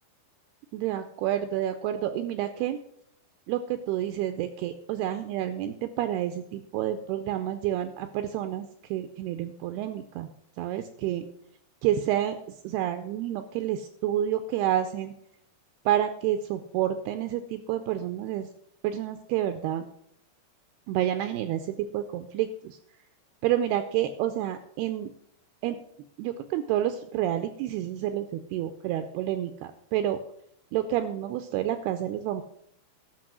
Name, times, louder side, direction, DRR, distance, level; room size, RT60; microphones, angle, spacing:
voice 1, 0.7-2.8 3.5-10.3 10.6-11.2 11.8-12.4 12.6-15.1 15.9-18.5 18.8-19.9 20.9-22.8 23.4-25.1 25.6-25.8 26.2-30.2 30.7-32.4, right 11 dB, 80° right, 9 dB, 2.4 m, -29 dB
12.5 x 6.2 x 6.0 m, 0.73 s
omnidirectional pair, 5.0 m